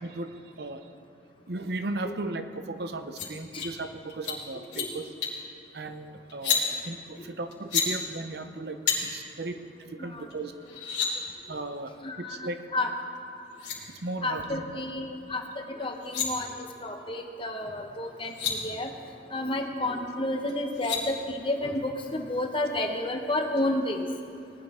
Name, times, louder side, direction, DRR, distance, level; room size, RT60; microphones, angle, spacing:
voice 1, 0.0-0.8 1.5-5.1 5.7-10.5 11.5-12.6 13.9-14.6, right 2 dB, 65° right, 8 dB, 0.7 m, -36 dB
sound 1, 3.1-3.3 3.6-3.7 4.1-4.3 4.6-4.9 5.2-5.4 6.3-6.6 7.5-7.9 8.9-9.0 10.3-10.4 10.6-11.1 13.1-13.2 13.5-13.8 15.8-16.3 17.9-18.0 18.2-18.5 20.5-21.0, left 7 dB, 85° left, 3.0 m, -29 dB
voice 2, 12.0-12.9 14.2-15.4 15.7-18.9 19.3-24.1, left 1 dB, 30° left, 3 dB, 1.0 m, -31 dB
19.0 x 11.5 x 3.7 m, 2.3 s
head